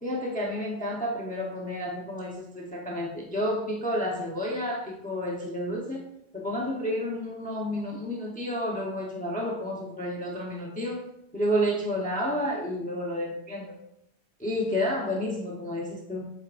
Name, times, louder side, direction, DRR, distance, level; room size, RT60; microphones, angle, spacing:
voice 1, 0.0-6.1 6.3-11.0 11.3-13.8 14.4-16.2, equal, 10° left, -3 dB, 0.9 m, -30 dB
8.3 x 4.6 x 2.5 m, 0.78 s
omnidirectional pair, 1.1 m